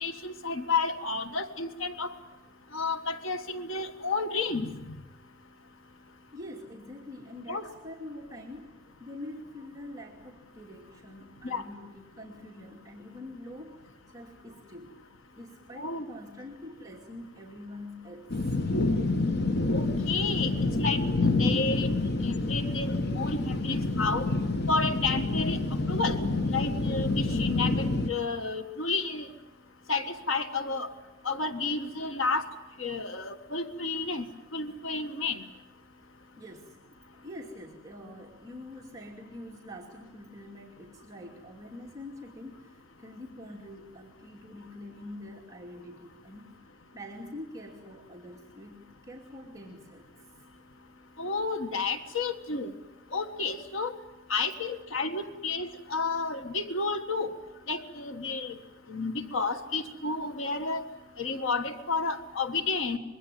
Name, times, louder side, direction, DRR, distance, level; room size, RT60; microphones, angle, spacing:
voice 1, 0.0-2.1 2.7-5.0 7.5-7.6 11.4-11.6 15.8-16.0 19.7-20.5 20.8-21.9 22.2-24.3 24.7-25.6 25.9-26.2 26.5-29.3 29.9-30.9 31.2-32.4 32.8-34.2 34.5-35.4 51.2-52.7 53.1-53.9 54.3-57.3 57.7-58.5 58.9-60.8 61.2-63.0, left 4 dB, 75° left, 8 dB, 1.6 m, -31 dB
voice 2, 6.3-8.7 9.0-13.8 14.1-15.0 15.3-18.5 36.1-36.8 37.1-46.6 46.9-50.1, left 1 dB, 20° right, -1 dB, 2.6 m, -45 dB
sound 1, 18.3-28.1, left 2 dB, 55° left, 1.3 m, -28 dB
25.0 x 22.5 x 9.2 m, 1.0 s
head